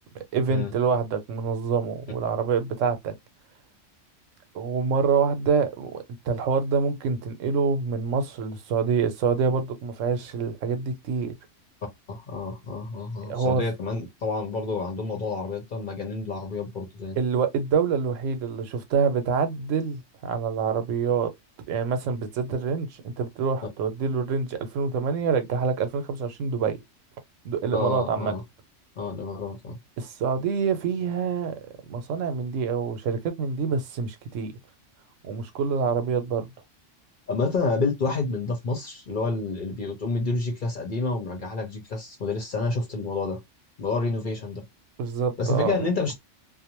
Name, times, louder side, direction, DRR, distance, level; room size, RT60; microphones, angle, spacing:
voice 1, 0.3-3.1 4.5-11.3 13.3-13.6 17.2-21.3 21.7-26.8 27.4-28.3 30.0-31.5 31.9-34.5 35.2-36.5 45.0-45.8, right 5 dB, 85° right, 1.0 m, -26 dB
voice 2, 12.1-17.2 27.7-28.4 29.0-29.8 37.3-43.4 43.8-44.6 45.4-46.1, left 3 dB, 50° left, 0.8 m, -29 dB
2.5 x 2.1 x 2.9 m
omnidirectional pair, 1.3 m